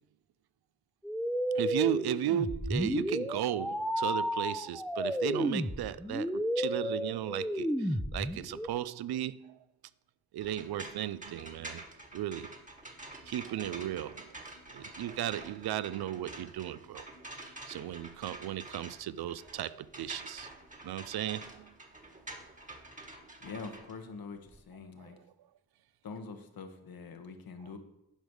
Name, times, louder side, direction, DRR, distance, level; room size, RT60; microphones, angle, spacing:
sound 1, 1.0-8.7, equal, ahead, 0.6 m, -32 dB
voice 1, 1.5-9.6 10.3-11.8 12.1-12.6 13.3-14.4 14.7-17.1 17.7-20.5 20.8-21.7 25.0-25.1, right 11 dB, 85° right, 0.5 m, -35 dB
sound 2, 10.4-24.6, right 2 dB, 20° right, 1.5 m, -48 dB
voice 2, 23.4-25.2 26.0-27.8, left 4 dB, 70° left, 1.3 m, -44 dB
10.0 x 5.2 x 6.3 m
cardioid pair, 85°, 37 cm